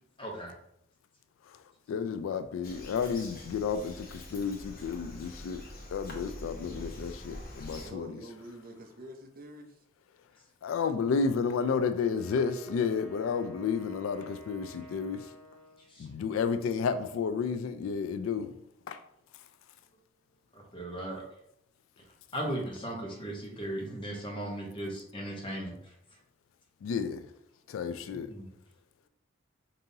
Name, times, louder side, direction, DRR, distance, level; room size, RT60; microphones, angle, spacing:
voice 1, 0.2-0.5 15.9-16.1 20.5-21.2 22.3-25.9 28.3-28.5, right 1 dB, 25° left, 1.0 m, -37 dB
voice 2, 1.9-5.6 5.9-8.2 10.6-15.3 16.0-18.5 18.9-19.0 26.8-27.2 27.7-28.3, left 5 dB, 80° left, 0.3 m, -31 dB
Bird vocalization bird call bird song, 2.6-7.9, left 1 dB, 45° left, 0.7 m, -45 dB
voice 3, 7.8-9.8, right 1 dB, 45° right, 0.5 m, -47 dB
Wind instrument woodwind instrument, 11.9-15.9, equal, 5° left, 0.6 m, -52 dB
5.2 x 2.7 x 2.7 m
head